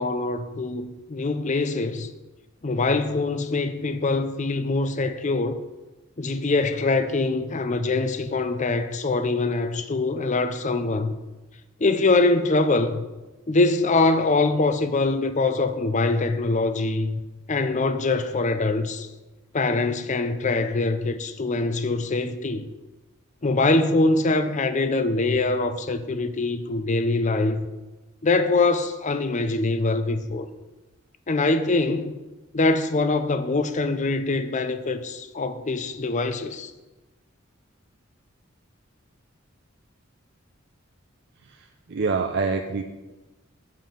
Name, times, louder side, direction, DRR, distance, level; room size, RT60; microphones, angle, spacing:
voice 1, 0.0-2.1 2.6-5.6 6.2-11.2 11.8-13.0 13.5-17.2 17.5-19.1 19.5-22.7 23.4-27.7 28.2-30.5 31.3-32.1 32.5-36.7, left 3 dB, 35° left, 0.6 m, -23 dB
voice 2, 41.5-42.8, right 4 dB, 55° right, 0.5 m, -26 dB
7.6 x 7.5 x 5.2 m
head